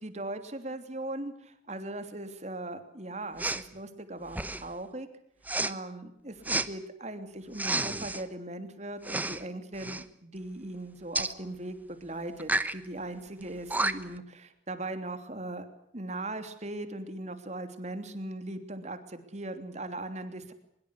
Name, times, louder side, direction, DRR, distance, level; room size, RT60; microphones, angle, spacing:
voice 1, 0.0-5.1 5.6-15.7 15.9-20.5, right 2 dB, 40° right, 8 dB, 3.1 m, -39 dB
Respiratory sounds, 3.4-3.6 4.3-4.7 5.4-5.7 6.4-6.7 7.5-8.2 9.0-9.4 9.7-10.0 11.1-11.3 12.4-12.7 13.4-13.5 13.7-14.2, right 2 dB, 10° right, 1.1 m, -30 dB
23.5 x 22.5 x 8.4 m, 0.72 s
head